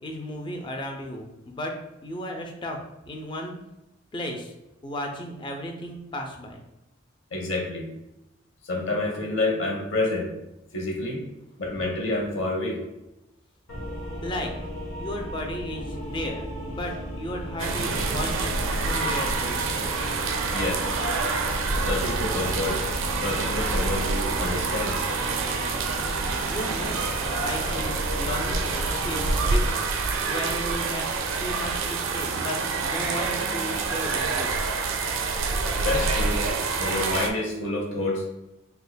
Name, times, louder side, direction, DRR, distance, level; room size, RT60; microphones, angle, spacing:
voice 1, 0.0-3.6 4.1-4.5 4.8-6.6 14.2-14.5 15.0-19.7 26.4-27.1 27.4-29.9 30.3-34.5, equal, 25° left, 3 dB, 0.4 m, -35 dB
voice 2, 7.3-7.9 8.6-10.3 10.7-11.2 11.6-12.8 20.5-20.9 21.8-22.8 23.1-25.1 35.8-36.4 36.8-38.2, left 2 dB, 65° left, 0 dB, 0.8 m, -28 dB
sound 1, 13.7-29.7, equal, 85° left, 1.3 m, -35 dB
sound 2, 17.6-37.3, right 4 dB, 75° right, 0.4 m, -27 dB
3.5 x 3.2 x 2.2 m, 0.93 s
head